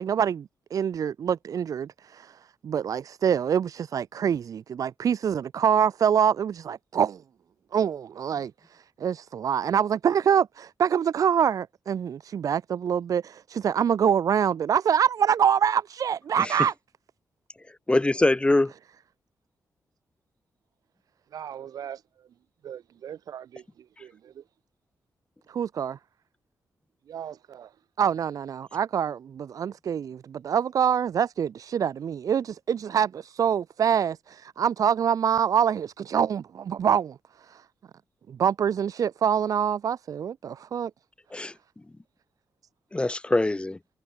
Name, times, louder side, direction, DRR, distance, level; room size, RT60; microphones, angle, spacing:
voice 1, 0.0-7.2 7.7-16.7 25.5-26.0 28.0-37.6 38.3-40.9, right 8 dB, 70° right, 0.7 m, -25 dB
voice 2, 17.9-18.7 41.3-41.5 42.9-43.8, left 2 dB, 15° left, 0.7 m, -23 dB
voice 3, 21.3-22.3 22.6-24.4 27.0-27.8, right 9 dB, 90° right, 5.9 m, -41 dB
cardioid pair, 85°, 6 cm